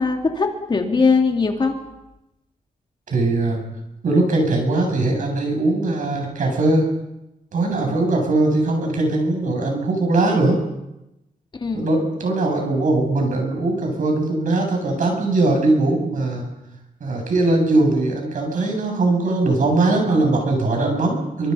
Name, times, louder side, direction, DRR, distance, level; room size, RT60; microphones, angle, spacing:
voice 1, 0.0-1.7 7.7-7.8 11.5-11.9, left 4 dB, 30° left, 3 dB, 2.6 m, -20 dB
voice 2, 3.1-3.6 4.0-6.9 7.5-10.6 11.7-16.4 17.0-21.5, right 2 dB, 60° right, 2 dB, 7.9 m, -20 dB
27.5 x 25.5 x 5.6 m, 0.94 s
wide cardioid pair, 175°, 15 cm